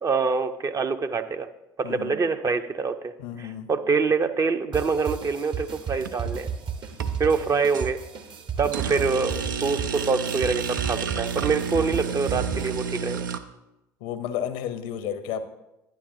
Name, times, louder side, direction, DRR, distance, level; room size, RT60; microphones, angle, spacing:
voice 1, 0.0-1.5 1.8-3.1 3.4-6.5 7.2-8.0 8.6-13.3, right 4 dB, 30° right, 8 dB, 0.6 m, -25 dB
voice 2, 3.2-3.7 14.0-15.5, left 9 dB, 70° left, 11 dB, 0.7 m, -32 dB
sound 1, 4.7-12.9, right 6 dB, 50° right, 1.0 m, -34 dB
sound 2, 6.0-6.5 6.9-7.9 8.7-13.4, right 6 dB, 85° right, 0.4 m, -31 dB
10.5 x 9.7 x 2.6 m, 0.93 s
hypercardioid pair, 60°, 10 cm